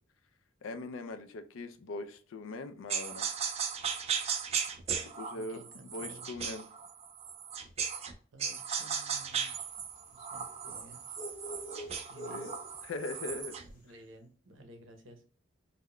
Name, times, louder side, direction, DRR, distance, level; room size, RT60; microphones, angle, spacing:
voice 1, 0.6-3.3 5.0-6.7 12.3-12.5 12.8-13.6, left 2 dB, 85° left, 9 dB, 0.4 m, -41 dB
sound 1, 2.9-8.1 8.4-13.7, right 7 dB, 30° right, 0.3 m, -36 dB
voice 2, 5.3-6.3 8.3-9.6 10.1-11.0 12.1-12.5 13.8-15.2, right 1 dB, 70° right, 5 dB, 0.7 m, -54 dB
sound 2, 9.1-13.7, equal, 40° left, 0.8 m, -47 dB
3.6 x 2.1 x 2.2 m, 0.43 s
head